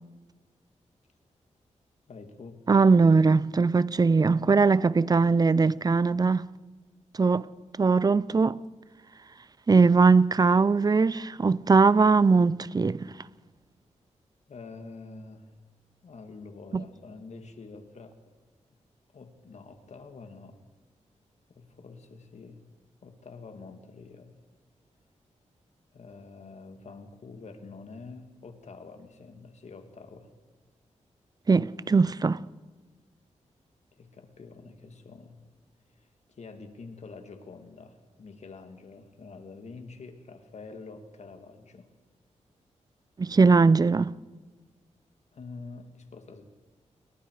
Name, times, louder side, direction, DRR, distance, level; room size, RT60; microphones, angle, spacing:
voice 1, 2.1-2.6 14.5-15.5 16.0-18.2 19.1-20.6 21.5-22.6 23.0-24.4 25.9-30.3 33.9-35.4 36.0-41.9 45.3-46.5, left 4 dB, 65° left, 2.6 m, -46 dB
voice 2, 2.7-6.5 7.2-7.5 7.8-8.6 9.7-13.1 16.7-16.8 31.5-32.4 43.2-44.1, right 4 dB, 30° right, 0.6 m, -21 dB
28.5 x 23.0 x 5.0 m
wide cardioid pair, 90°, 12 cm